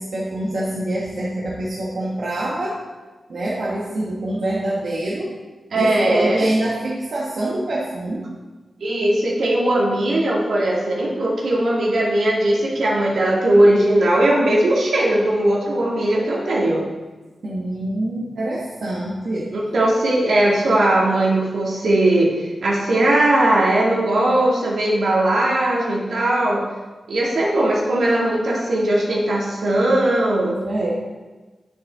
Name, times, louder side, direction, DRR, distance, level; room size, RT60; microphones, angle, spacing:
voice 1, 0.0-2.8 3.3-5.3 5.7-8.3 17.4-19.5 30.6-30.9, right 1 dB, 65° right, -5 dB, 1.4 m, -25 dB
voice 2, 5.7-6.5 8.8-16.8 19.5-26.6 27.1-30.6, right 1 dB, 80° right, -4 dB, 2.1 m, -19 dB
9.5 x 7.6 x 3.6 m, 1.3 s
wide cardioid pair, 125°, 0 cm